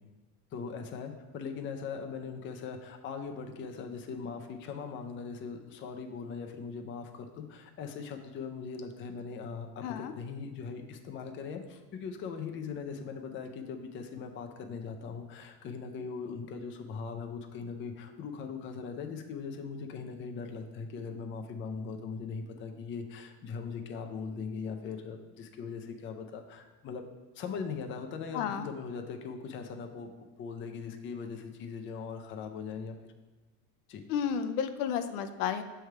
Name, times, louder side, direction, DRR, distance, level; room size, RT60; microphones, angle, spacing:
voice 1, 0.5-27.0 27.3-33.0 33.9-34.0, left 5 dB, 25° left, 4 dB, 0.5 m, -40 dB
voice 2, 9.8-10.1 28.3-28.7 34.1-35.6, left 8 dB, 70° left, 9 dB, 0.6 m, -32 dB
6.3 x 3.4 x 4.6 m, 1.2 s
supercardioid pair, 110°, 47 cm